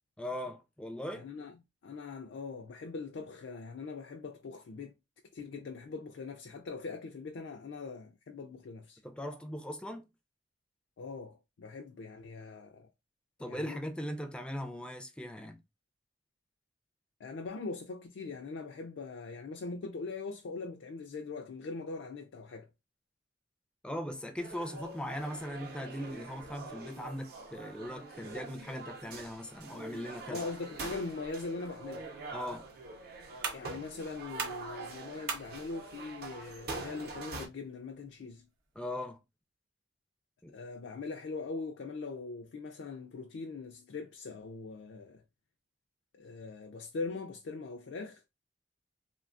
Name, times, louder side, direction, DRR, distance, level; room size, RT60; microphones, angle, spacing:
voice 1, 0.2-1.3 9.0-10.1 13.4-15.6 23.8-30.4 32.3-32.7 38.8-39.2 40.4-40.5, left 1 dB, 5° left, 0.4 m, -39 dB
voice 2, 1.1-1.6 1.8-5.0 5.3-9.0 11.0-12.9 13.5-13.8 17.2-22.7 30.3-32.1 33.5-38.5 40.5-45.2 46.1-48.2, left 4 dB, 75° left, 0.4 m, -41 dB
sound 1, 24.4-37.5, right 3 dB, 55° right, 0.6 m, -45 dB
sound 2, 32.0-38.9, right 5 dB, 90° right, 0.8 m, -45 dB
3.2 x 2.2 x 2.4 m
head